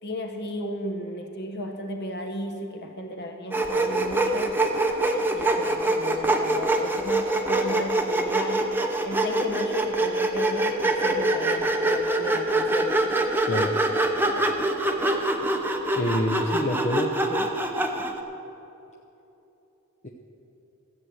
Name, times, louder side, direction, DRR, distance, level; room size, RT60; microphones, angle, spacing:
voice 1, 0.0-4.5 5.1-8.6 9.0-13.0, left 1 dB, 50° left, 4 dB, 1.4 m, -34 dB
Sawing, 3.5-18.2, right 2 dB, 10° right, 0.8 m, -24 dB
voice 2, 16.0-17.5 20.0-20.1, left 1 dB, 35° left, 0 dB, 0.7 m, -27 dB
14.0 x 8.1 x 7.7 m, 3.0 s
head